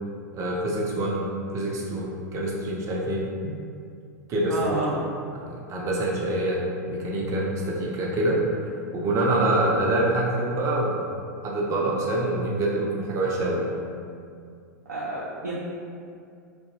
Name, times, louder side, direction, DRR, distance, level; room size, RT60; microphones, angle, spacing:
voice 1, 0.3-1.3 1.5-3.3 4.3-5.0 5.3-6.6 6.9-8.4 8.9-11.1 11.4-13.8, right 1 dB, 35° right, -3 dB, 0.5 m, -25 dB
voice 2, 4.5-4.9 14.9-15.5, right 1 dB, 85° right, -8 dB, 0.4 m, -30 dB
2.6 x 2.2 x 2.7 m, 2.3 s
hypercardioid pair, 95°, 9 cm